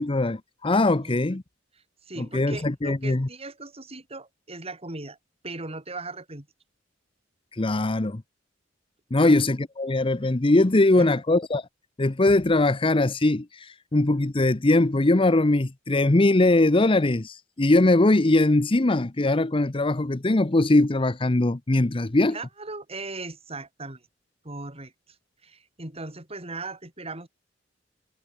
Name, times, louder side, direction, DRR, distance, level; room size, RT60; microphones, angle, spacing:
voice 1, 0.0-1.4 2.3-3.3 7.5-8.2 9.1-11.7 12.0-22.4, left 2 dB, 30° left, 0.8 m, -21 dB
voice 2, 2.0-5.2 5.4-6.5 9.2-9.4 10.9-11.1 22.3-24.1 24.4-25.2 25.4-27.3, right 2 dB, 35° right, 4.9 m, -38 dB
head